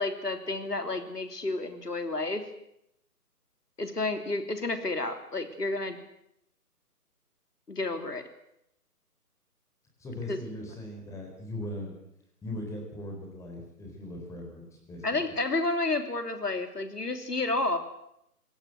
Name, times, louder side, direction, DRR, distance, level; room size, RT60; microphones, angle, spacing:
voice 1, 0.0-2.4 3.8-6.0 7.7-8.2 10.3-10.4 15.0-17.8, left 2 dB, 80° left, 8 dB, 3.4 m, -30 dB
voice 2, 10.0-11.9 12.4-15.2, left 1 dB, 5° left, 1 dB, 4.2 m, -39 dB
25.5 x 18.0 x 7.8 m, 0.78 s
figure-of-eight pair, 140°, 46 cm